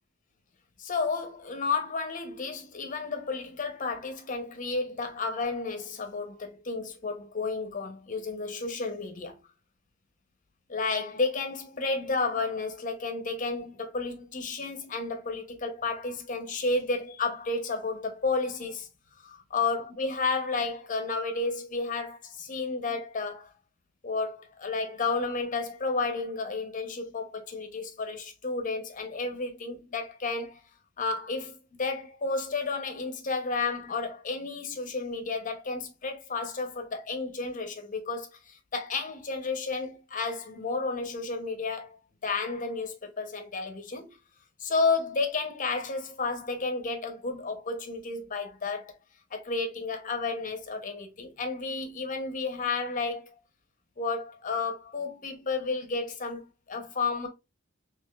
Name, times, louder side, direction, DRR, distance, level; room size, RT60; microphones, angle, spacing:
voice 1, 0.8-9.4 10.7-18.9 19.5-23.5 24.0-30.6 31.0-44.2 44.6-49.0 49.3-53.3 54.0-57.3, left 3 dB, 40° left, 0.7 m, -32 dB
3.7 x 2.9 x 2.3 m
head